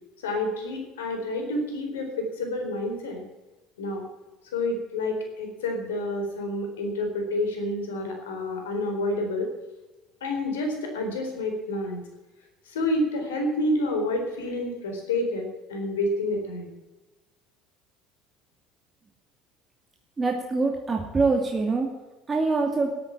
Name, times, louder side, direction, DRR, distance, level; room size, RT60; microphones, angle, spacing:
voice 1, 0.2-3.2 3.8-4.0 4.5-9.5 10.2-12.0 12.7-16.7, left 1 dB, 85° left, 3 dB, 4.1 m, -29 dB
voice 2, 20.2-21.9 22.3-23.0, right 3 dB, 25° right, 2 dB, 2.5 m, -24 dB
13.5 x 9.0 x 8.7 m, 1.1 s
hypercardioid pair, 70°, 0 cm